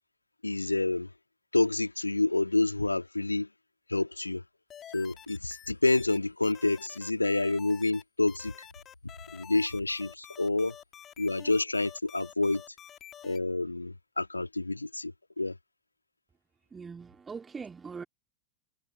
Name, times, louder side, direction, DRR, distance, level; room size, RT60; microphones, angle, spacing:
voice 1, 0.4-1.1 1.5-3.5 3.9-4.4 4.9-8.7 9.3-10.7 11.2-12.6 13.2-15.6, left 2 dB, 85° left, 1.9 m, -28 dB
sound 1, 4.7-6.2 6.4-8.0 8.3-13.4, left 10 dB, 25° left, 2.7 m, -49 dB
voice 2, 16.7-18.0, right 5 dB, 15° right, 2.4 m, -41 dB
figure-of-eight pair, 90°, 0 cm